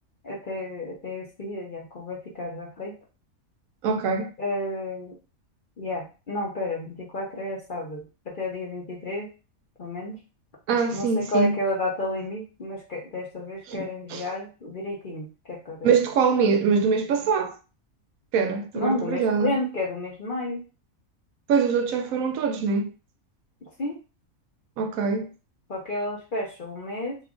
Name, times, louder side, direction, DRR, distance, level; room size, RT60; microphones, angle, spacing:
voice 1, 0.2-2.9 4.4-5.2 5.8-9.3 9.8-10.2 10.9-15.9 18.7-20.6 23.6-24.0 25.7-27.2, left 2 dB, 45° left, 0.8 m, -31 dB
voice 2, 3.8-4.3 10.7-11.5 13.7-14.2 15.8-17.6 18.3-19.5 21.5-22.9 24.8-25.3, right 5 dB, 75° right, 1.0 m, -23 dB
2.9 x 2.3 x 3.6 m
omnidirectional pair, 1.5 m